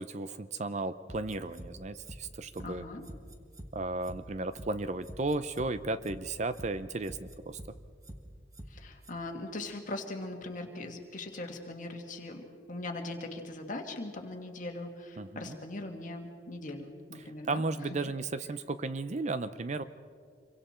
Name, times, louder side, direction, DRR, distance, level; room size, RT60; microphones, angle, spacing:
voice 1, 0.0-2.8 3.7-7.6 15.2-15.6 17.2-19.8, right 2 dB, 40° right, 13 dB, 0.5 m, -34 dB
sound 1, 1.1-1.7 2.0-2.2 2.5-2.7 3.0-3.7 4.0-4.2 4.5-4.7 5.0-5.7 6.0-6.2 6.5-6.7 7.0-7.7 8.0-8.2 8.5-8.7 9.0-9.1, right 1 dB, 20° right, 1.3 m, -45 dB
voice 2, 2.6-3.0 8.7-17.6, left 2 dB, 40° left, 3 dB, 1.9 m, -40 dB
26.5 x 23.5 x 4.4 m, 2.2 s
head